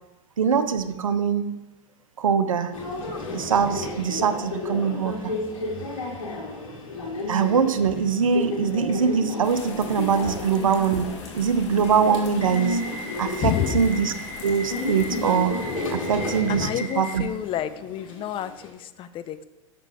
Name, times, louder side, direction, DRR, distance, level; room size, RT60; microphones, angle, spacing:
voice 1, 0.4-1.6 2.2-2.7 3.3-5.3 7.3-11.1 11.3-12.8 13.2-14.1 14.4-15.5 15.9-16.7 17.0-17.2, right 6 dB, 90° right, 11 dB, 0.6 m, -23 dB
Subway metro underground, 2.7-18.7, left 2 dB, 85° left, 1.9 m, -32 dB
sound 1, 9.4-16.0, left 4 dB, 65° left, 1.7 m, -42 dB
voice 2, 13.4-14.2 16.5-19.4, left 11 dB, 30° left, 13 dB, 0.5 m, -30 dB
6.6 x 6.0 x 4.8 m, 1.0 s
hypercardioid pair, 105°, 17 cm